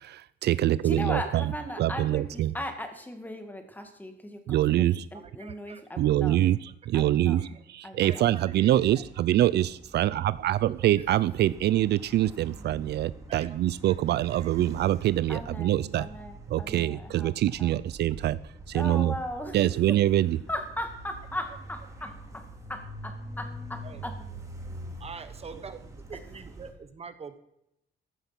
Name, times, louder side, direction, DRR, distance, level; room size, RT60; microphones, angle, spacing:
voice 1, 0.0-1.5 1.8-2.5 4.5-5.1 6.0-16.1 16.5-18.4 18.7-19.1 19.5-20.4, right 13 dB, 65° right, 0.5 m, -25 dB
voice 2, 0.8-6.4 6.9-7.4 7.8-8.3 15.3-17.3 17.6-17.7 18.7-20.0 20.5-22.4 22.7-24.2, left 1 dB, 10° left, 2.3 m, -38 dB
voice 3, 5.4-5.8 7.4-7.6 8.0-8.7 13.3-13.6 13.8-14.2 22.0-22.1 23.8-24.0 25.0-25.8 26.1-27.4, right 5 dB, 35° right, 1.3 m, -44 dB
sound 1, 8.2-26.7, right 1 dB, 15° right, 2.7 m, -45 dB
15.0 x 11.5 x 6.1 m
cardioid pair, 130°, 18 cm